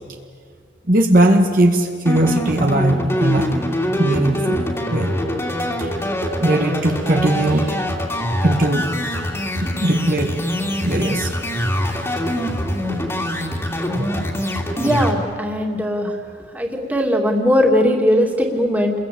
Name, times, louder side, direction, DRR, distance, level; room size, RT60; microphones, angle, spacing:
voice 1, 0.9-3.5 4.0-4.6 4.9-5.1 5.8-5.9 6.4-7.9 8.1-8.9 9.6-10.4 10.8-11.3, right 1 dB, 50° right, 3 dB, 1.7 m, -18 dB
sound 1, 2.1-15.1, equal, 15° left, 2.7 m, -23 dB
voice 2, 14.8-16.1 16.5-18.9, equal, 10° right, 1 dB, 2.7 m, -19 dB
28.5 x 21.5 x 8.7 m, 2.1 s
head